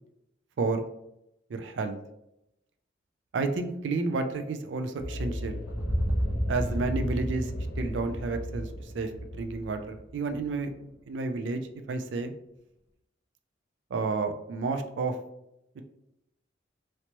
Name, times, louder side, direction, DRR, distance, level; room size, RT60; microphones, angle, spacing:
voice 1, 1.5-2.0 3.3-5.6 6.5-7.5 7.8-11.6 11.9-12.3 13.9-15.2 15.8-15.9, right 3 dB, 80° right, 8 dB, 0.4 m, -31 dB
sound 1, 5.0-10.6, equal, 80° left, 0.4 m, -37 dB
sound 2, 5.7-9.7, equal, 10° right, 0.5 m, -32 dB
3.2 x 2.9 x 2.9 m, 0.84 s
head